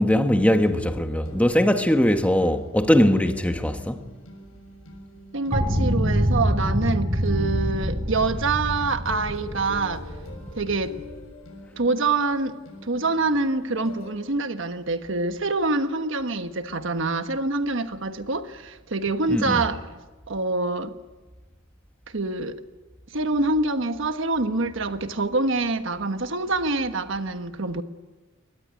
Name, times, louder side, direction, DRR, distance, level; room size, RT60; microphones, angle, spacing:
voice 1, 0.0-4.0 19.3-19.6, equal, 5° left, 1.3 m, -20 dB
sound 1, 0.6-14.1, left 2 dB, 85° left, 7.3 m, -44 dB
voice 2, 5.3-10.1 10.6-11.0 11.8-12.6 12.8-19.9 20.3-20.9 22.1-22.6 23.1-27.8, right 3 dB, 65° right, 1.3 m, -26 dB
sound 2, 5.5-11.2, equal, 35° right, 4.7 m, -25 dB
23.0 x 19.0 x 9.7 m
head